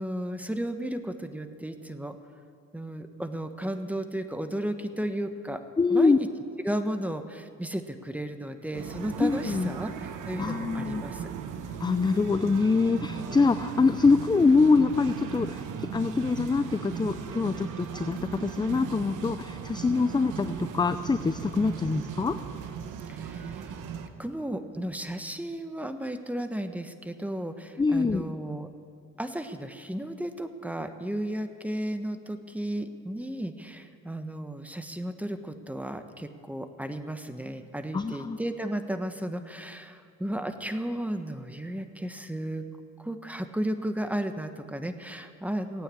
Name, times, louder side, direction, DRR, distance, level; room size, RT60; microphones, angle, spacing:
voice 1, 0.0-2.2 2.7-5.6 5.9-6.3 6.6-11.3 23.1-23.7 24.2-28.7 29.2-42.7 43.0-45.8, right 1 dB, 5° right, 8 dB, 1.1 m, -34 dB
voice 2, 5.8-6.2 9.2-9.8 10.4-11.0 11.8-22.3 27.8-28.3 37.9-38.4, left 4 dB, 15° left, 10 dB, 0.5 m, -24 dB
sound 1, 8.7-24.1, right 7 dB, 75° right, 1.2 m, -38 dB
16.0 x 9.1 x 8.5 m, 2.4 s
cardioid pair, 90°, 32 cm